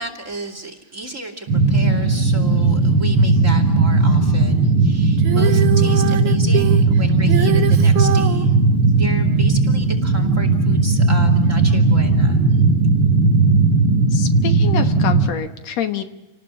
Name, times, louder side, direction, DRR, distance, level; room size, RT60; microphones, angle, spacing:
voice 1, 0.0-8.6 8.9-12.6, right 1 dB, 25° right, 7 dB, 2.6 m, -33 dB
sound 1, 1.5-15.3, right 3 dB, 40° right, 4.6 m, -16 dB
Female singing, 5.2-8.5 10.4-10.5, right 11 dB, 80° right, 2.7 m, -24 dB
voice 2, 14.1-16.0, left 8 dB, 65° left, 7 dB, 2.4 m, -26 dB
29.0 x 19.0 x 7.5 m, 1.0 s
omnidirectional pair, 3.3 m